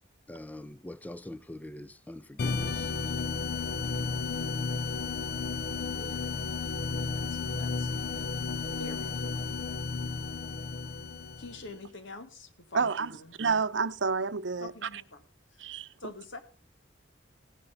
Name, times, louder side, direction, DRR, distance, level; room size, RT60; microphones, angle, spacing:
voice 1, 0.3-2.9, left 1 dB, 10° left, 0.5 m, -43 dB
sound 1, 2.4-11.8, left 4 dB, 55° left, 0.6 m, -33 dB
voice 2, 5.9-6.3 7.1-7.9 8.7-9.6 11.4-13.3 14.6-15.2 15.5-15.7 16.0-16.4, left 2 dB, 85° left, 2.2 m, -46 dB
voice 3, 12.7-13.1 13.4-14.9 15.6-15.9, right 5 dB, 70° right, 0.7 m, -29 dB
18.0 x 10.5 x 2.7 m
head